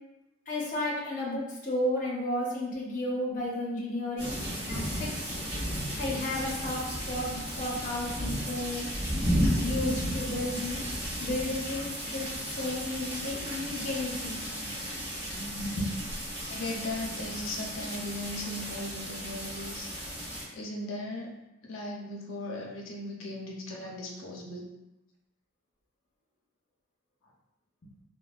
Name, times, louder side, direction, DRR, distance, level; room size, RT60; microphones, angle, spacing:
voice 1, 0.5-5.1 5.9-8.9 9.6-10.8 11.2-14.4 14.6-14.7 15.3-15.9, left 1 dB, 40° left, -4 dB, 0.7 m, -33 dB
sound 1, 4.2-20.4, equal, 30° right, 1.5 m, -34 dB
voice 2, 16.5-19.9 20.5-21.3 21.6-24.7, left 1 dB, 85° left, -1 dB, 0.6 m, -37 dB
3.2 x 2.1 x 2.3 m, 0.92 s
head